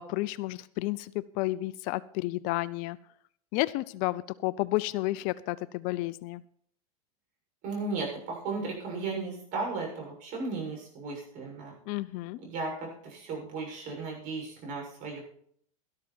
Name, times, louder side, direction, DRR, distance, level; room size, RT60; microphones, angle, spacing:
voice 1, 0.0-3.0 3.5-6.4 11.9-12.4, left 19 dB, 45° left, 17 dB, 0.5 m, -31 dB
voice 2, 7.6-11.7 12.4-15.2, right 3 dB, 45° right, 0 dB, 7.0 m, -35 dB
12.5 x 12.5 x 4.5 m, 0.64 s
supercardioid pair, 125°, 19 cm